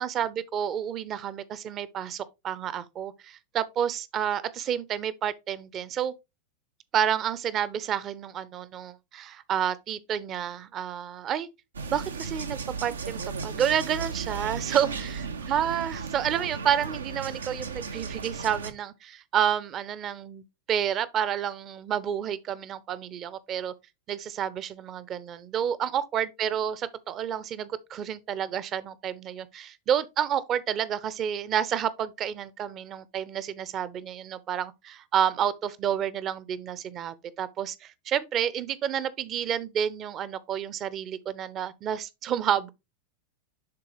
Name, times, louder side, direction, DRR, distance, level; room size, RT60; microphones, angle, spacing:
voice 1, 0.0-6.1 6.9-11.5 11.9-15.2 15.5-23.7 24.1-42.7, right 9 dB, 30° right, 0.7 m, -30 dB
sound 1, 11.7-18.7, right 5 dB, 70° right, 0.7 m, -35 dB
10.5 x 4.0 x 3.0 m
figure-of-eight pair, 90°, 0 cm